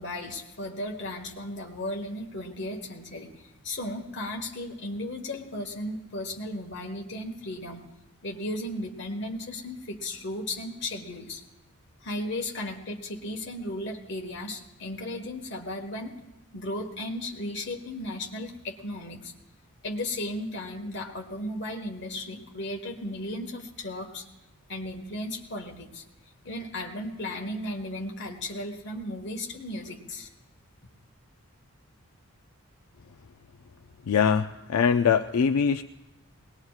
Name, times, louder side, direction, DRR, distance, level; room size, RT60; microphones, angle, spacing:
voice 1, 0.0-7.8 8.2-11.4 12.0-16.2 16.5-19.3 19.8-24.3 24.7-26.0 26.4-30.3, left 1 dB, 50° left, 2 dB, 1.4 m, -35 dB
voice 2, 34.1-35.8, left 6 dB, 80° left, 7 dB, 0.4 m, -22 dB
21.0 x 19.5 x 2.4 m, 1.0 s
head